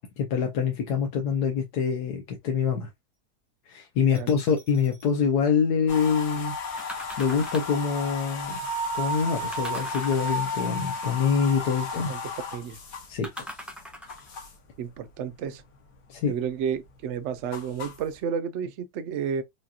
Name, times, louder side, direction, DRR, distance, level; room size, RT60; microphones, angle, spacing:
voice 1, 0.2-2.9 3.7-8.6 8.9-12.1 13.1-13.3 16.1-16.3, left 6 dB, 80° left, 1.4 m, -25 dB
sound 1, 4.1-5.1 6.8-7.9 9.5-10.7 13.2-14.4 15.0-15.1, equal, ahead, 0.4 m, -42 dB
sound 2, 5.9-14.7 15.1-15.8 16.1-18.2, left 1 dB, 65° left, 1.5 m, -34 dB
voice 2, 14.8-15.6 16.3-19.4, right 7 dB, 65° right, 0.7 m, -31 dB
4.9 x 2.8 x 2.4 m
omnidirectional pair, 1.7 m